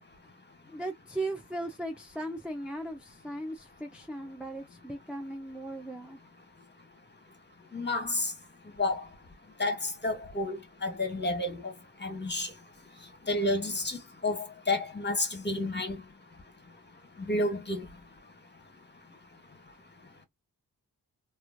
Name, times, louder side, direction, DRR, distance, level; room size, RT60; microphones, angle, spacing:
voice 1, 0.7-6.2, right 1 dB, 5° right, 0.5 m, -37 dB
voice 2, 7.7-8.3 8.8-9.0 9.6-11.7 12.0-12.5 13.3-16.0 17.2-17.9, left 2 dB, 25° left, 1.2 m, -30 dB
3.0 x 2.5 x 2.5 m
cardioid pair, 50°, 38 cm